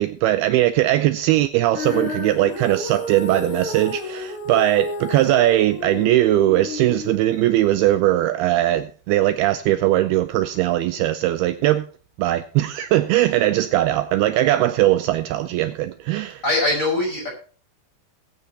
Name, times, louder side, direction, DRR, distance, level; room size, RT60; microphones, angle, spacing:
voice 1, 0.0-11.9 12.2-16.4, right 14 dB, 80° right, 2.4 m, -20 dB
Female singing, 1.7-8.0, left 2 dB, 75° left, 6.5 m, -31 dB
voice 2, 16.4-17.3, left 2 dB, 20° left, 5.2 m, -21 dB
20.5 x 9.1 x 2.9 m
omnidirectional pair, 4.8 m